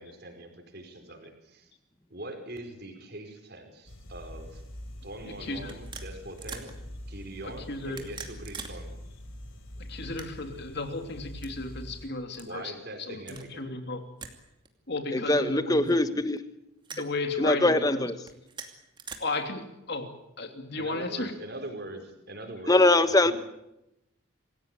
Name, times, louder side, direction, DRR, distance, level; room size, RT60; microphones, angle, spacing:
voice 1, 0.0-1.7 2.1-4.6 5.0-6.7 7.1-8.9 12.4-13.7 20.8-22.8 23.2-23.3, right 1 dB, 50° right, 5 dB, 4.8 m, -42 dB
sound 1, 3.9-12.1, equal, 75° left, 4.8 m, -44 dB
umbrella clicks and clacks, 4.6-4.8 5.6-6.7 7.8-8.8 9.1-9.2 10.0-10.6 11.3-11.5 12.3-12.5 13.2-13.5 14.2-14.4 14.6-14.7 15.7-16.2 16.8-17.1 18.2-19.2, right 5 dB, 20° right, 2.6 m, -43 dB
voice 2, 5.3-5.7 7.4-8.0 9.8-12.7 13.1-14.0 14.9-16.0 16.9-18.1 19.2-20.1 20.4-21.3, left 3 dB, 50° left, 6 dB, 3.1 m, -34 dB
voice 3, 15.1-16.4 17.4-18.2 22.7-23.3, left 2 dB, 15° left, 11 dB, 1.2 m, -22 dB
26.5 x 16.5 x 9.2 m, 0.88 s
head